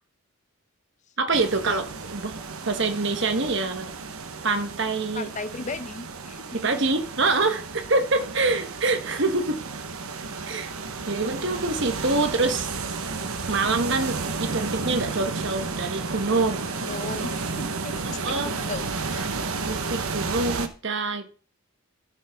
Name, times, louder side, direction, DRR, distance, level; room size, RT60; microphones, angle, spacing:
voice 1, 1.2-2.3 2.7-3.9 4.4-5.3 6.5-9.6 10.5-10.7 11.1-12.9 13.5-16.7 17.0-17.4 18.0-18.5 19.6-21.3, right 3 dB, 55° right, 1.2 m, -26 dB
sound 1, 1.3-20.7, right 4 dB, 80° right, 1.1 m, -32 dB
voice 2, 5.1-6.4 16.7-19.4, left 3 dB, 35° left, 0.7 m, -36 dB
13.0 x 7.2 x 3.6 m
head